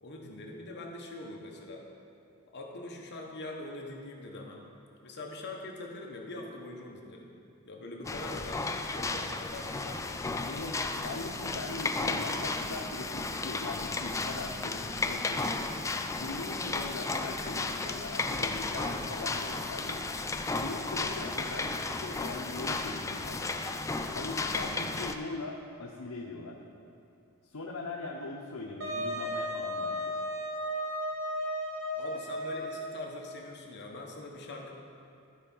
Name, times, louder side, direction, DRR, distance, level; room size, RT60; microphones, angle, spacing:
voice 1, 0.0-1.9 2.5-4.6 5.0-7.3 7.7-8.6 8.9-10.2 24.5-24.8 31.9-34.7, left 2 dB, 50° left, 0 dB, 1.1 m, -43 dB
sound 1, 8.0-25.1, left 3 dB, 15° left, 0.4 m, -34 dB
voice 2, 10.5-15.9 16.2-20.0 20.5-23.5 24.1-26.6 27.5-30.2, left 3 dB, 85° left, -1 dB, 0.8 m, -41 dB
Wind instrument woodwind instrument, 28.8-33.2, equal, 60° right, 1.3 m, -34 dB
13.5 x 4.5 x 5.5 m, 2.7 s
head